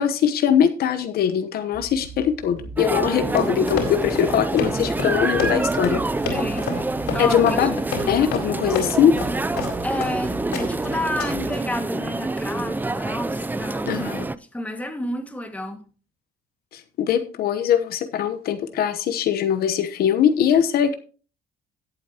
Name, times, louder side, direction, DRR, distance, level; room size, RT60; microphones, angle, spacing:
voice 1, 0.0-6.0 7.2-7.8 8.1-9.1 13.9-14.2 16.7-21.0, left 9 dB, 65° left, 9 dB, 1.0 m, -21 dB
sound 1, 1.7-11.5, right 2 dB, 50° right, 4.9 m, -40 dB
sound 2, 2.8-14.4, right 2 dB, 10° right, 0.5 m, -27 dB
Run, 3.2-10.2 10.5-10.9 11.2-11.5, left 6 dB, 90° left, 4.3 m, -30 dB
voice 2, 6.3-7.7 8.0-8.3 9.8-14.0 14.5-15.8, left 1 dB, 10° left, 5 dB, 1.9 m, -30 dB
16.5 x 8.3 x 2.9 m, 0.37 s
cardioid pair, 110°, 17 cm